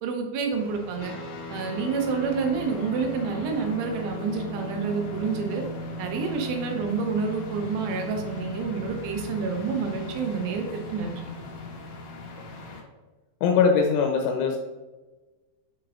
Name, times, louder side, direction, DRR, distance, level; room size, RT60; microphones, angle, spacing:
voice 1, 0.0-1.1 1.5-5.6 6.0-11.2, right 5 dB, 75° right, 3 dB, 2.8 m, -28 dB
sound 1, 0.5-12.8, left 3 dB, 70° left, 2.4 m, -43 dB
sound 2, 1.0-12.7, equal, 50° left, 3.3 m, -39 dB
voice 2, 13.4-14.6, left 5 dB, 85° left, 2 dB, 3.1 m, -21 dB
9.3 x 4.7 x 2.5 m, 1.2 s
omnidirectional pair, 5.6 m